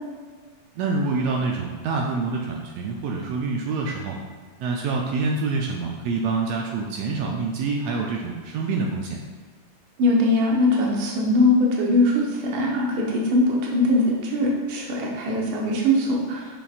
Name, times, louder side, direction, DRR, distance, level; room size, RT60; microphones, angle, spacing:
voice 1, 0.8-4.2 4.6-9.2, right 4 dB, 90° right, 0 dB, 1.4 m, -26 dB
voice 2, 10.0-16.5, left 1 dB, 60° right, -2 dB, 1.3 m, -21 dB
7.0 x 5.7 x 2.4 m, 1.5 s
omnidirectional pair, 3.5 m